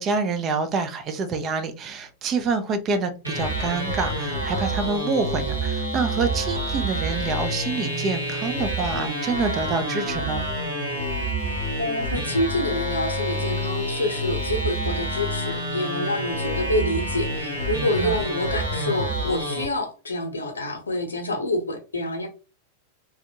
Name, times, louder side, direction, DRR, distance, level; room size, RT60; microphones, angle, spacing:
voice 1, 0.0-10.4 18.0-18.2, right 4 dB, 30° right, 0.5 m, -27 dB
sound 1, 3.2-19.6, right 1 dB, 85° right, 1.4 m, -28 dB
voice 2, 11.8-22.3, left 1 dB, 75° left, 0.8 m, -27 dB
3.4 x 2.3 x 2.8 m
figure-of-eight pair, 90°, 0 cm